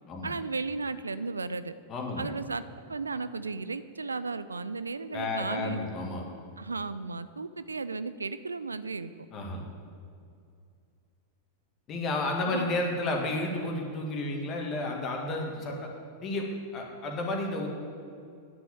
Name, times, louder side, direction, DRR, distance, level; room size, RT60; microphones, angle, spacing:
voice 1, 0.2-1.7 2.2-5.8 6.6-9.1 12.5-12.7, right 4 dB, 75° right, 14 dB, 0.4 m, -35 dB
voice 2, 1.9-2.3 5.1-6.2 9.3-9.6 11.9-15.9 16.2-16.4 16.7-17.7, left 2 dB, 30° left, 1 dB, 2.0 m, -32 dB
9.8 x 6.1 x 8.7 m, 2.4 s
figure-of-eight pair, 90°, 0 cm